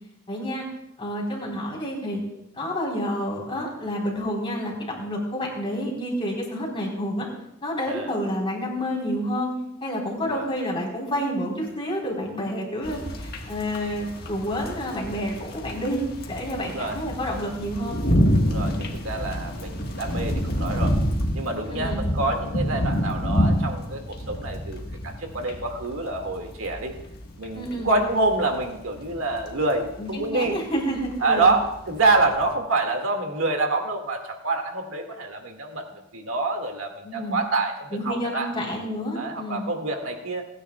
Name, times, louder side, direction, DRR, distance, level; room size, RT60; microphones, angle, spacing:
voice 1, 0.3-0.7 1.0-2.2 2.5-7.2 7.6-9.5 9.8-16.0 16.3-18.0 21.7-22.0 27.5-27.9 30.0-31.5 37.0-37.4 37.9-39.7, equal, 25° left, -3 dB, 4.0 m, -29 dB
sound 1, 12.8-32.5, equal, 45° left, 1.5 m, -28 dB
voice 2, 16.6-17.0 18.4-21.0 21.3-26.9 27.4-30.6 31.2-35.9 36.1-38.5 39.2-40.5, right 3 dB, 70° right, 3 dB, 2.0 m, -26 dB
29.5 x 10.0 x 2.3 m, 0.83 s
head